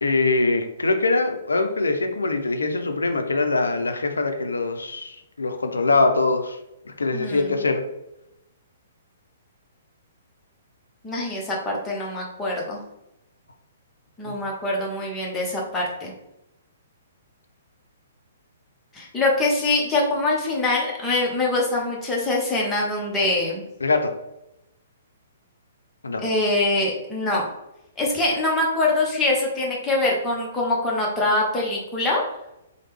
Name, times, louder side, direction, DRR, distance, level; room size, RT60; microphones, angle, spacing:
voice 1, 0.0-6.6 6.9-7.8 14.3-14.4 23.8-24.1 26.0-26.2, left 3 dB, 75° left, 7 dB, 0.4 m, -23 dB
voice 2, 7.1-7.6 11.0-12.8 14.2-16.1 18.9-23.6 26.2-27.4 28.0-32.2, left 2 dB, 15° left, -3 dB, 0.8 m, -24 dB
3.1 x 2.1 x 3.1 m, 0.88 s
figure-of-eight pair, 120°, 0 cm